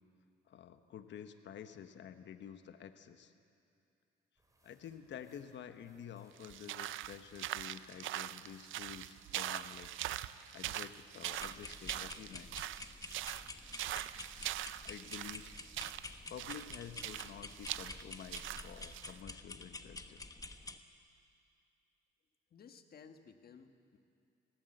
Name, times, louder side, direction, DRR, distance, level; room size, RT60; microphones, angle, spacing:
voice 1, 0.5-3.3 4.6-9.9 10.5-12.7 14.4-14.5 14.8-15.5 16.3-20.3, left 8 dB, 65° left, 9 dB, 1.1 m, -50 dB
sound 1, 4.4-16.5, right 1 dB, 15° right, 4.4 m, -71 dB
sound 2, 6.4-19.2, right 13 dB, 80° right, 0.6 m, -42 dB
sound 3, 11.3-20.8, left 2 dB, 20° left, 1.1 m, -49 dB
voice 2, 22.5-24.0, left 6 dB, 50° left, 7 dB, 1.5 m, -57 dB
20.0 x 17.5 x 7.9 m, 2.5 s
cardioid pair, 90°, 20 cm